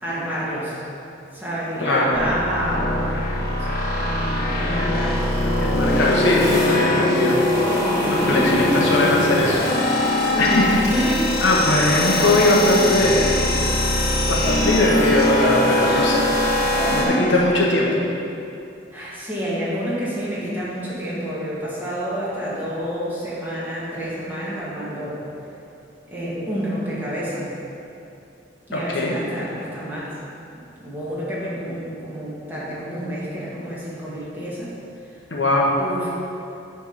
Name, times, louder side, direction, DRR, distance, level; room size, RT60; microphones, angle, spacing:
voice 1, 0.0-0.8 1.3-3.7 4.0-5.4 7.7-8.7 9.8-11.3 15.8-17.2 18.9-25.2 26.1-27.5 28.7-30.1 30.8-34.7 35.8-36.1, equal, 10° right, -9 dB, 1.8 m, -29 dB
voice 2, 1.8-2.1 5.6-7.4 8.0-9.6 9.9-10.8 11.4-13.4 14.3-18.0 28.7-29.2 35.3-35.7, left 1 dB, 80° left, -3 dB, 1.2 m, -20 dB
sound 1, 2.1-17.0, left 1 dB, 55° left, 1.2 m, -22 dB
8.7 x 3.5 x 5.9 m, 2.7 s
head